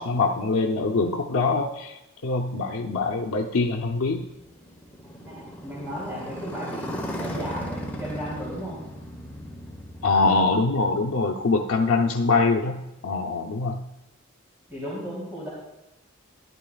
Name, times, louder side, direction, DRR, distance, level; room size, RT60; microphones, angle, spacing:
voice 1, 0.0-4.3 10.0-13.8, left 3 dB, 90° left, 0 dB, 0.6 m, -24 dB
Motorcycle, 3.5-12.8, equal, 10° left, 1.0 m, -38 dB
voice 2, 5.3-8.8 14.7-15.5, equal, 10° right, -9 dB, 2.9 m, -35 dB
13.5 x 11.0 x 2.3 m, 0.93 s
head